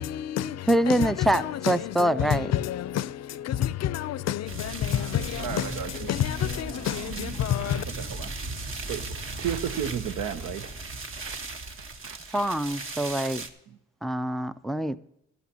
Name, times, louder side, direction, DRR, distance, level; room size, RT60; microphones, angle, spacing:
voice 1, 0.0-7.8, left 11 dB, 60° left, 0.5 m, -29 dB
voice 2, 0.7-2.5 12.3-13.5 14.0-15.0, right 1 dB, ahead, 0.4 m, -25 dB
sound 1, 4.5-13.5, right 3 dB, 45° right, 1.3 m, -37 dB
voice 3, 5.4-6.2 6.7-8.3 8.9-10.8 11.1-11.4 12.0-12.5 13.7-13.8, right 9 dB, 80° right, 0.8 m, -35 dB
14.5 x 12.5 x 2.8 m
cardioid pair, 90°, 30 cm